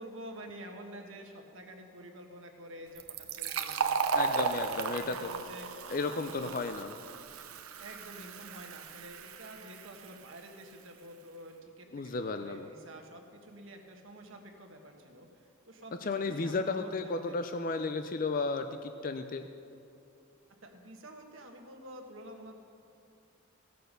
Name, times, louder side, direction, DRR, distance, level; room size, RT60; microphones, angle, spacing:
voice 1, 0.0-6.6 7.8-17.4 20.6-22.6, right 1 dB, 70° right, 3 dB, 1.4 m, -49 dB
Fill (with liquid), 2.9-10.3, right 5 dB, 90° right, 0.7 m, -35 dB
voice 2, 4.1-5.3 5.9-6.9 11.9-12.7 16.0-19.5, left 3 dB, 40° left, 8 dB, 0.4 m, -34 dB
16.0 x 6.8 x 6.5 m, 2.5 s
head